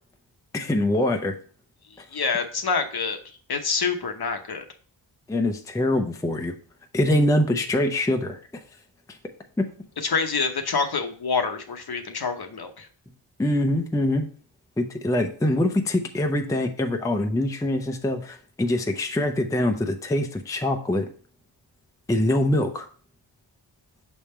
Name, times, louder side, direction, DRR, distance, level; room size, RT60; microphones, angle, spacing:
voice 1, 0.5-1.3 5.3-6.5 6.9-8.4 9.6-9.7 13.4-14.3 14.8-21.1 22.1-22.9, left 1 dB, 5° left, 4 dB, 0.5 m, -24 dB
voice 2, 1.9-3.2 3.5-4.7 10.0-12.9, left 5 dB, 50° left, 6 dB, 0.9 m, -27 dB
6.1 x 3.5 x 4.3 m, 0.43 s
wide cardioid pair, 85°, 47 cm